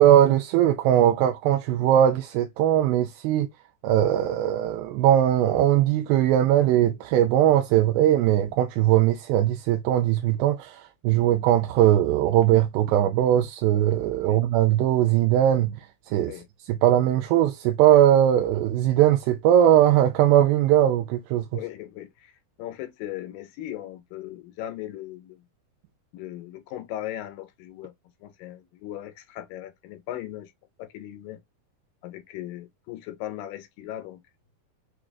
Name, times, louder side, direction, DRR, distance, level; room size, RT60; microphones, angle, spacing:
voice 1, 0.0-3.5 3.8-15.7 16.1-21.4, right 11 dB, 80° right, 2.2 m, -20 dB
voice 2, 21.5-22.3 22.6-25.4 26.1-27.9 28.2-30.5 30.8-31.4 32.0-34.2, left 13 dB, 80° left, 2.1 m, -38 dB
6.1 x 2.3 x 2.3 m
omnidirectional pair, 4.3 m